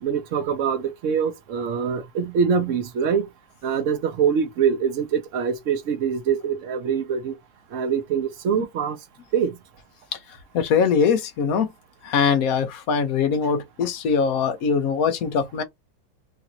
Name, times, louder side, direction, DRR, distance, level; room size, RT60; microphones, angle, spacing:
voice 1, 0.0-3.3 3.6-7.3 7.7-9.0 9.3-9.6 13.4-13.5, right 7 dB, 65° right, 0.7 m, -24 dB
voice 2, 10.5-11.7 12.0-15.6, left 6 dB, 70° left, 0.8 m, -22 dB
3.2 x 2.5 x 2.8 m
omnidirectional pair, 2.0 m